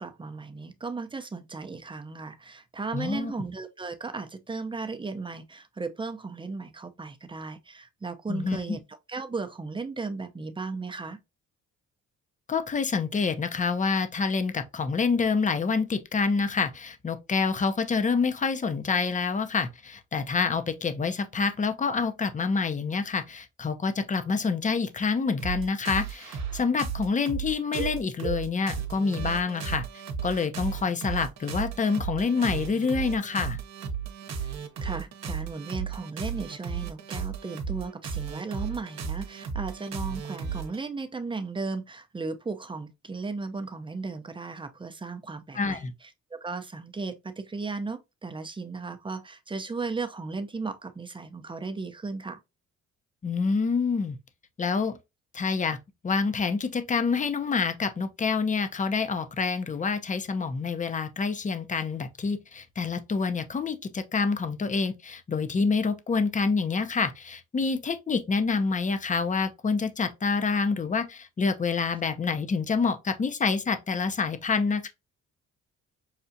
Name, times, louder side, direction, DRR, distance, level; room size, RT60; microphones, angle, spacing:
voice 1, 0.0-8.8 9.1-11.2 34.3-34.5 34.8-52.4, right 4 dB, 15° right, 0.6 m, -36 dB
voice 2, 2.9-3.3 8.3-8.8 12.5-29.8 30.2-33.6 45.5-45.9 53.2-54.2 54.6-55.0 55.3-55.8 56.0-74.9, left 4 dB, 25° left, 0.6 m, -27 dB
sound 1, 25.4-40.8, right 6 dB, 60° right, 0.9 m, -34 dB
5.7 x 2.4 x 2.6 m
cardioid pair, 90°, 30 cm